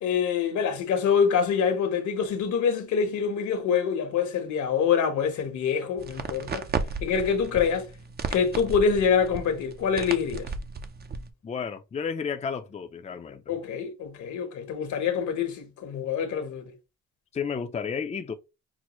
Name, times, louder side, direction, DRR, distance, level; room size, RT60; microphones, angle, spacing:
voice 1, 0.0-6.7 7.0-7.9 8.3-10.5 13.5-16.7, left 6 dB, 75° left, 1.1 m, -25 dB
sound 1, 6.0-11.3, right 4 dB, 35° right, 0.6 m, -34 dB
voice 2, 11.4-13.4 17.3-18.3, left 6 dB, 25° left, 0.5 m, -32 dB
6.0 x 2.0 x 3.0 m
cardioid pair, 90°, 30 cm